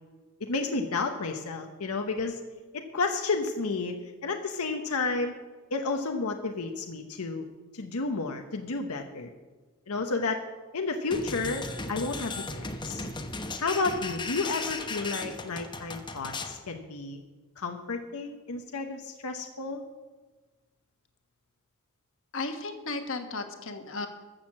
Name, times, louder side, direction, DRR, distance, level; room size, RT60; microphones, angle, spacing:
voice 1, 0.4-2.4 2.7-4.0 4.2-5.3 5.7-7.5 7.7-9.3 9.9-10.4 10.7-13.0 13.6-17.2 17.6-19.8, left 3 dB, 90° left, 4 dB, 0.9 m, -31 dB
sound 1, 11.1-16.6, left 3 dB, 20° left, 0.9 m, -36 dB
voice 2, 22.3-24.1, left 3 dB, 60° left, 6 dB, 1.3 m, -34 dB
14.0 x 6.5 x 7.3 m, 1.3 s
head